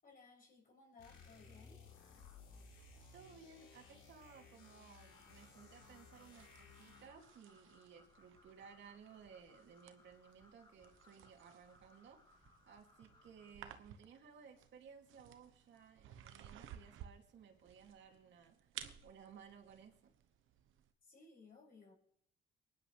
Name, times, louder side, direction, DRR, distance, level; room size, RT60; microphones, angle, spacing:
voice 1, 0.0-1.8 21.0-21.9, left 4 dB, 45° left, 7.0 m, -61 dB
sound 1, 1.0-7.2, left 4 dB, 80° left, 4.0 m, -60 dB
sound 2, 2.7-20.9, right 10 dB, 85° right, 1.1 m, -59 dB
voice 2, 3.1-18.7 19.0-20.1, right 6 dB, 65° right, 2.7 m, -59 dB
sound 3, 5.1-13.5, left 2 dB, 25° left, 2.6 m, -68 dB
23.0 x 11.0 x 3.4 m
cardioid pair, 90°, 20 cm